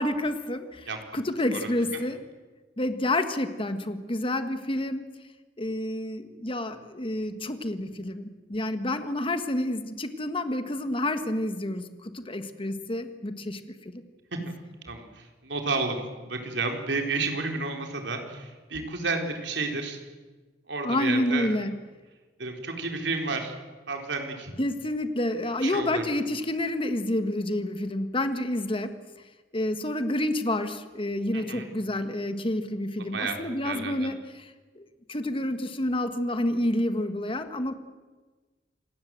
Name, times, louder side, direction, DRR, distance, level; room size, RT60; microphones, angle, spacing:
voice 1, 0.0-2.2 2.8-5.0 5.6-14.0 20.8-21.8 24.6-28.9 29.5-37.7, left 1 dB, 30° left, 9 dB, 1.6 m, -29 dB
voice 2, 14.8-20.0 20.7-21.6 22.4-23.5 23.9-24.5 25.6-26.0 31.3-31.7 33.1-33.4 33.6-34.1, right 3 dB, 80° right, 3 dB, 4.2 m, -31 dB
28.0 x 18.5 x 7.8 m, 1.3 s
head